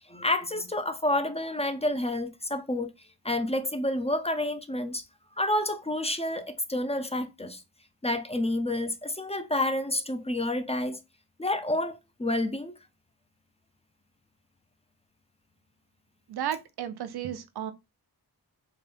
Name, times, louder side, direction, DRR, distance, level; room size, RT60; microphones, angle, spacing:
voice 1, 0.1-2.9 3.2-5.0 5.4-7.6 8.0-11.0 11.4-12.8, left 1 dB, 15° left, 0.4 m, -29 dB
voice 2, 16.3-17.7, right 10 dB, 90° right, 0.6 m, -33 dB
4.0 x 2.2 x 3.2 m
wide cardioid pair, 90°, 38 cm